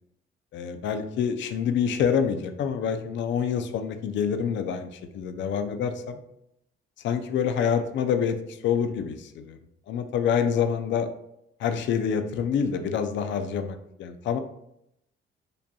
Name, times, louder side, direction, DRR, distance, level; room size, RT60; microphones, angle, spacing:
voice 1, 0.5-6.2 7.0-9.6 9.9-11.1 11.6-14.4, left 7 dB, 70° left, 8 dB, 0.4 m, -27 dB
5.1 x 2.8 x 2.2 m, 0.78 s
cardioid pair, 90°, 20 cm